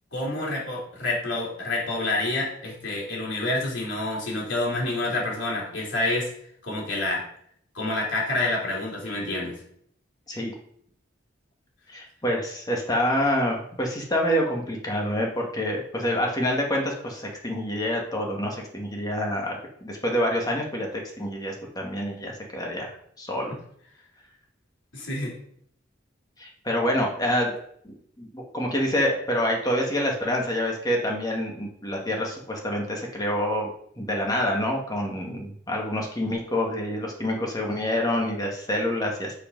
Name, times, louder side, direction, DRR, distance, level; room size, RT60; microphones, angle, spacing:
voice 1, 0.1-6.3 6.6-7.2 7.7-9.6 24.9-25.3, left 2 dB, 80° left, -3 dB, 3.0 m, -28 dB
voice 2, 11.9-23.5 26.4-27.5 27.8-33.7 34.0-39.3, left 1 dB, 20° left, 0 dB, 1.7 m, -27 dB
6.6 x 5.3 x 5.2 m, 0.65 s
head